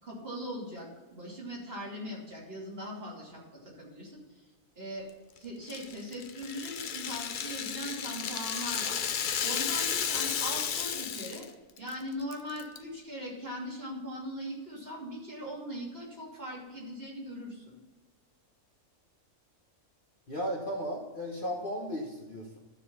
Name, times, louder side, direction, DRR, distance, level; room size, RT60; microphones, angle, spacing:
voice 1, 0.0-4.2 4.8-5.0 5.3-9.0 9.4-11.5 11.8-17.8, equal, 40° right, -5 dB, 3.0 m, -40 dB
Rattle (instrument), 5.7-11.5 11.8-11.9 12.3-12.8, left 7 dB, 70° left, 0.4 m, -33 dB
voice 2, 20.3-22.6, equal, 40° left, -1 dB, 1.3 m, -35 dB
12.0 x 4.2 x 7.0 m, 1.2 s
omnidirectional pair, 1.5 m